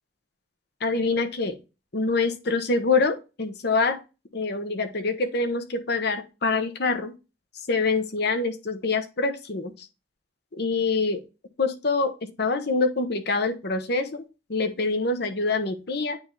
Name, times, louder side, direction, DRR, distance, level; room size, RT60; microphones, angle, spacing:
voice 1, 0.8-1.6 1.9-4.0 4.3-7.1 7.7-9.9 10.5-11.2 11.6-16.2, left 3 dB, 60° left, 7 dB, 1.0 m, -25 dB
8.8 x 3.3 x 3.7 m, 0.29 s
head